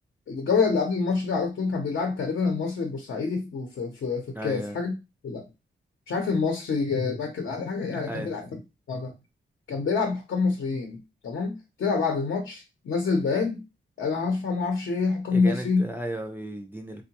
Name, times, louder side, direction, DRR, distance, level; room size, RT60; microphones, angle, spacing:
voice 1, 0.3-4.9 5.2-5.4 6.1-8.6 8.9-9.1 9.7-11.0 11.2-13.6 14.0-15.8, left 4 dB, 75° left, 3 dB, 0.7 m, -27 dB
voice 2, 4.3-4.8 8.0-8.3 15.3-17.0, right 1 dB, 10° right, 3 dB, 0.3 m, -34 dB
3.6 x 2.1 x 2.8 m, 0.26 s
wide cardioid pair, 125°, 20 cm